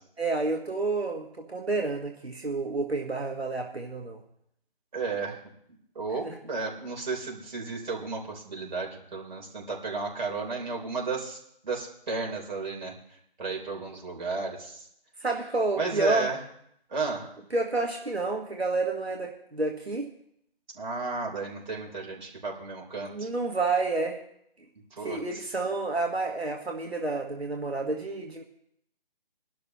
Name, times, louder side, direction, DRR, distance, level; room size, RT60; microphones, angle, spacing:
voice 1, 0.2-4.2 6.2-6.4 15.2-16.3 17.5-20.1 23.1-24.2 25.0-28.4, right 3 dB, 90° right, 2 dB, 1.5 m, -29 dB
voice 2, 4.9-5.4 6.0-12.9 13.4-14.9 15.8-16.4 16.9-17.3 20.7-23.3 24.9-25.4, right 4 dB, 45° right, -1 dB, 3.7 m, -33 dB
21.5 x 12.0 x 3.0 m, 0.72 s
figure-of-eight pair, 155°, 31 cm